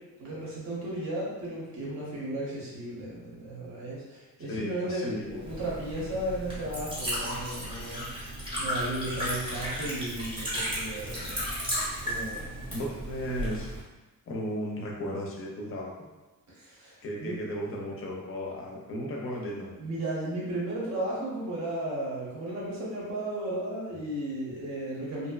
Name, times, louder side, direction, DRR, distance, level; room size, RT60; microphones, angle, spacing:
voice 1, 0.2-8.1 8.6-11.8 12.0-12.7 16.5-17.3 19.8-25.3, right 1 dB, 50° right, -5 dB, 0.9 m, -35 dB
voice 2, 4.5-5.4 12.7-13.7 14.3-15.9 17.0-19.7 23.9-24.0, equal, 40° left, -2 dB, 0.5 m, -35 dB
Liquid, 5.3-13.8, equal, 15° right, 0.6 m, -34 dB
2.6 x 2.1 x 2.3 m, 1.1 s
cardioid pair, 155°, 35 cm